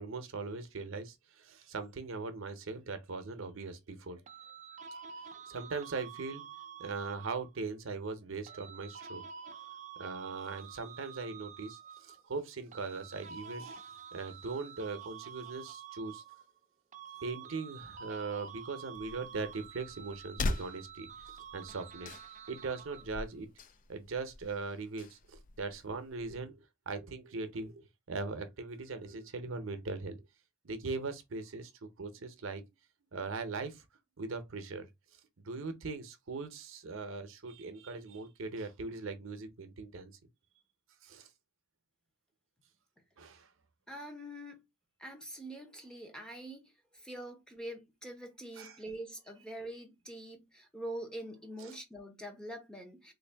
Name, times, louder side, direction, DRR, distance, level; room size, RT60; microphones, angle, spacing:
voice 1, 0.0-4.2 4.9-5.0 5.5-6.5 6.8-9.2 10.0-16.2 17.2-21.1 21.5-22.2 22.5-23.5 23.9-26.6 26.9-30.2 30.6-32.6 33.1-33.8 34.2-34.9 35.4-40.1 41.0-41.3 43.2-43.5 48.6-48.8 51.6-51.8, right 4 dB, 75° right, 0.7 m, -40 dB
sound 1, 4.3-7.6 8.5-12.3 12.7-16.6 16.9-23.3, right 7 dB, 35° right, 0.5 m, -49 dB
sound 2, 18.9-26.4, left 2 dB, 40° left, 0.4 m, -42 dB
voice 2, 43.9-44.6 45.0-53.1, right 1 dB, 5° left, 0.8 m, -44 dB
3.4 x 2.6 x 3.3 m
head